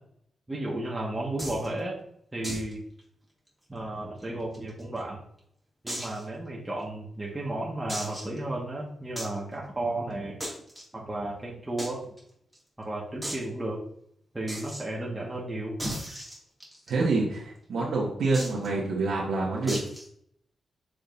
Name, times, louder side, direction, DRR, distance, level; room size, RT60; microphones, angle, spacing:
voice 1, 0.5-2.0 2.3-2.8 3.7-5.2 5.8-10.4 10.9-12.1 12.8-13.8 14.3-15.7, right 1 dB, 15° right, -4 dB, 1.6 m, -33 dB
sound 1, 1.4-1.7 2.4-2.7 3.0-3.1 3.5-3.6 4.2-5.0 5.9-6.2 6.8-6.9 7.9-8.4 9.2-9.4 10.4-10.8 11.8-11.9 12.2-12.3 12.5-12.6 13.2-13.4 14.5-14.8 15.8-16.9 18.3-18.7 19.7-20.1, equal, 5° left, 2.3 m, -36 dB
voice 2, 16.9-19.8, right 3 dB, 80° right, -6 dB, 1.4 m, -27 dB
7.0 x 5.2 x 2.6 m, 0.67 s
cardioid pair, 90°, 0 cm